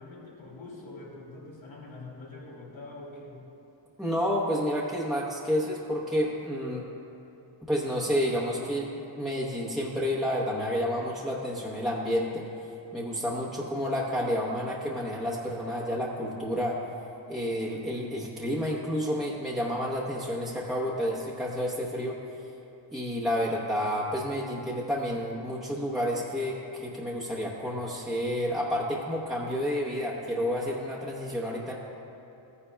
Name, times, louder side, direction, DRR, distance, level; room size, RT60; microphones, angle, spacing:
voice 1, 0.0-3.4, left 2 dB, 85° left, -4 dB, 2.3 m, -44 dB
voice 2, 4.0-6.8 7.7-12.5 12.9-16.8 17.3-22.2 22.9-31.7, equal, ahead, -5 dB, 0.9 m, -30 dB
14.5 x 9.8 x 2.3 m, 3.0 s
wide cardioid pair, 105°, 46 cm